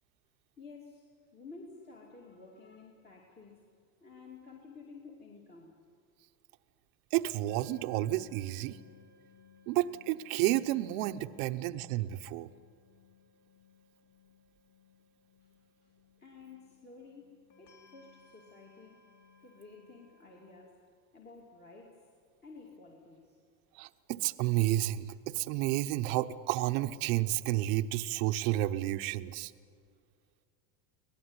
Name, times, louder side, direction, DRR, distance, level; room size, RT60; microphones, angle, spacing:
voice 1, 0.6-3.7 4.0-5.8 15.4-15.5 15.8-15.9 16.2-19.0 19.4-20.8 21.1-22.1 22.4-23.4, left 4 dB, 20° left, -1 dB, 2.5 m, -52 dB
voice 2, 7.1-8.8 9.7-12.5 23.8-29.5, right 15 dB, 65° right, 8 dB, 1.0 m, -31 dB
sound 1, 7.5-20.5, left 5 dB, 40° left, 2.7 m, -63 dB
24.5 x 18.5 x 9.7 m, 2.1 s
supercardioid pair, 150°, 45 cm